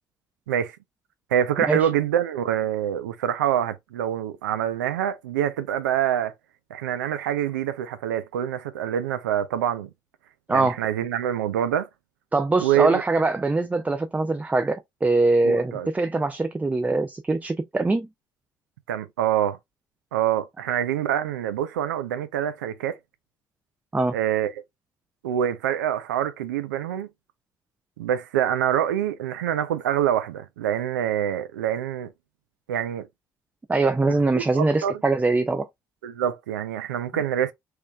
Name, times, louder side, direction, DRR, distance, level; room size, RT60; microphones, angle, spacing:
voice 1, 1.3-6.3 6.7-9.9 10.5-11.9 12.6-13.0 15.4-15.9 18.9-19.6 20.1-23.0 24.1-24.5 25.2-27.1 28.0-32.1 32.7-33.1 34.3-35.0 36.0-37.5, right 10 dB, 75° right, 0.4 m, -25 dB
voice 2, 12.3-18.1 23.9-24.2 33.7-35.7, right 3 dB, 15° right, 0.4 m, -23 dB
3.2 x 3.0 x 2.2 m
figure-of-eight pair, 45°, 10 cm